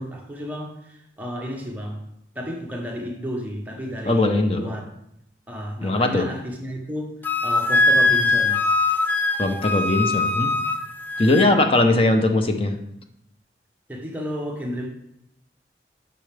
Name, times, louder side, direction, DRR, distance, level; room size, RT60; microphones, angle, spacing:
voice 1, 0.0-2.0 2.3-4.8 5.5-7.2 7.4-8.6 13.9-14.9, equal, 10° right, 0 dB, 1.0 m, -32 dB
voice 2, 4.1-4.7 5.8-6.3 9.4-10.5 11.2-12.7, left 2 dB, 30° left, 6 dB, 0.7 m, -20 dB
Wind instrument woodwind instrument, 7.2-11.5, left 3 dB, 10° left, 0.4 m, -21 dB
10.0 x 5.6 x 3.4 m, 0.79 s
head